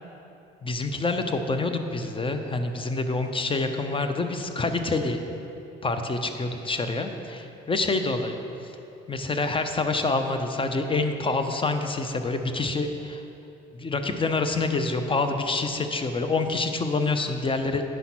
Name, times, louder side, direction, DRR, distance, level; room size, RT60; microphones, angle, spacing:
voice 1, 0.6-5.2 5.8-8.4 9.1-13.2 13.7-17.8, left 3 dB, 25° left, 7 dB, 0.8 m, -27 dB
9.4 x 5.7 x 6.1 m, 2.9 s
cardioid pair, 90°, 20 cm